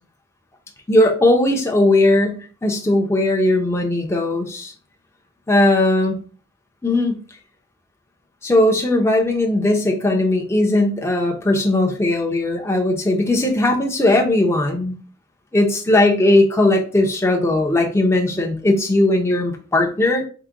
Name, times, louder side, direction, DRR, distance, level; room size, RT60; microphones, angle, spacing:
voice 1, 0.9-4.7 5.5-6.2 6.8-7.2 8.4-14.9 15.5-20.2, left 1 dB, 15° left, 1 dB, 0.6 m, -18 dB
4.7 x 2.2 x 3.7 m, 0.38 s
head